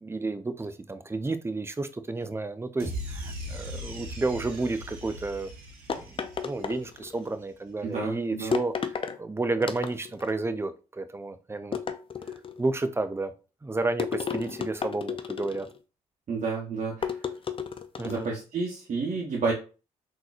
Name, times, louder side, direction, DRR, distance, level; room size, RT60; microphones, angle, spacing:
voice 1, 0.0-5.5 6.0-8.7 9.2-11.8 12.6-13.3 13.6-15.7 18.0-18.3, right 3 dB, 15° right, 0.5 m, -31 dB
sound 1, 2.8-7.1, equal, 80° right, 1.1 m, -39 dB
sound 2, 5.9-7.3 8.5-9.2 9.6-10.3 11.7-12.6 14.0-15.8 17.0-18.3, left 6 dB, 35° left, 0.5 m, -33 dB
voice 2, 7.8-8.5 16.3-17.2 18.0-19.5, right 4 dB, 55° right, 1.0 m, -30 dB
3.7 x 2.9 x 2.5 m
hypercardioid pair, 45°, 16 cm